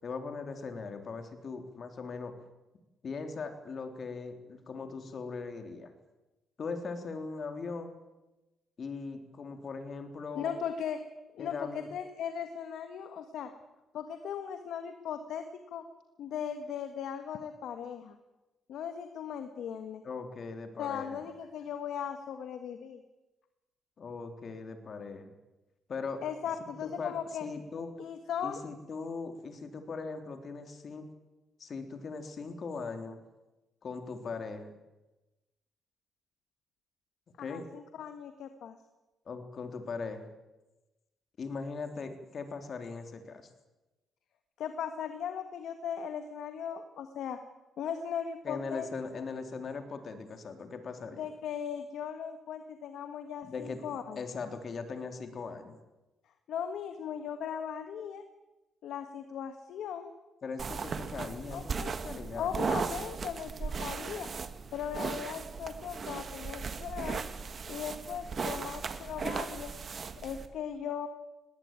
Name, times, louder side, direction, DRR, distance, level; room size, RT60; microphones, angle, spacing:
voice 1, 0.0-2.3 3.0-5.9 6.6-7.9 8.8-10.5 11.4-11.9 20.0-21.2 24.0-25.3 25.9-26.2 26.6-27.9 28.4-31.1 31.6-33.2 33.8-34.7 37.4-37.6 39.2-40.3 41.4-43.5 48.4-51.2 53.4-55.8 60.4-62.6, left 4 dB, 50° left, 6 dB, 3.4 m, -40 dB
voice 2, 10.3-11.0 11.3-13.5 13.9-15.8 16.2-18.1 18.7-20.0 20.8-23.0 26.2-27.5 28.0-28.6 37.4-38.8 44.6-47.4 47.8-48.9 51.2-54.2 56.5-58.2 58.8-60.1 61.5-61.9 62.3-64.3 64.7-67.2 67.7-69.7 70.2-71.1, left 8 dB, 75° left, 8 dB, 1.6 m, -38 dB
sound 1, 60.6-70.5, right 5 dB, 45° right, 1.8 m, -37 dB
19.5 x 18.0 x 9.0 m, 1.1 s
cardioid pair, 95°, 0 cm